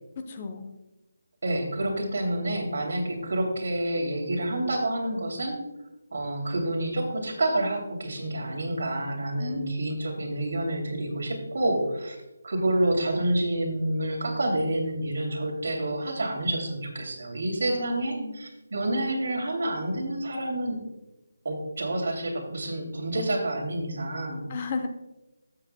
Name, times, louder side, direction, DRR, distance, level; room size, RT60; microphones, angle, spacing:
voice 1, 0.2-0.7 9.4-9.8 17.7-18.4 24.5-24.9, left 4 dB, 30° left, 6 dB, 0.7 m, -34 dB
voice 2, 1.4-5.6 6.1-12.2 12.4-20.8 21.4-24.4, right 1 dB, 65° right, 1 dB, 2.7 m, -28 dB
14.0 x 7.7 x 2.2 m, 1.0 s
figure-of-eight pair, 165°, 0 cm